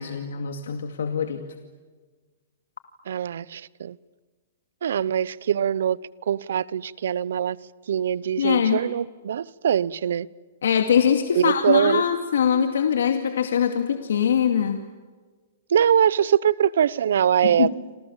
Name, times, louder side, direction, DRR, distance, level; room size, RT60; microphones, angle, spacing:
voice 1, 0.0-1.4 8.4-8.8 10.6-14.8 17.4-17.7, left 8 dB, 85° left, 2.3 m, -22 dB
voice 2, 3.1-4.0 4.8-6.0 6.3-7.6 7.9-10.3 11.3-12.0 15.7-17.7, right 9 dB, 75° right, 0.8 m, -22 dB
28.5 x 27.0 x 7.3 m
hypercardioid pair, 160°, 0 cm